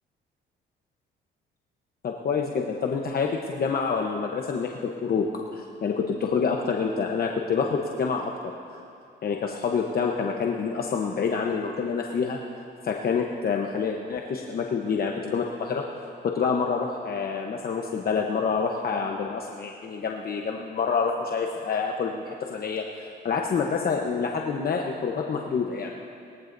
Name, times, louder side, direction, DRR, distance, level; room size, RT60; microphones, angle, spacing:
voice 1, 2.0-8.5 9.2-12.4 12.8-15.9 16.2-22.9 23.2-26.0, left 5 dB, 50° left, 1 dB, 1.0 m, -27 dB
21.0 x 14.5 x 2.7 m, 2.5 s
cardioid pair, 90°, 20 cm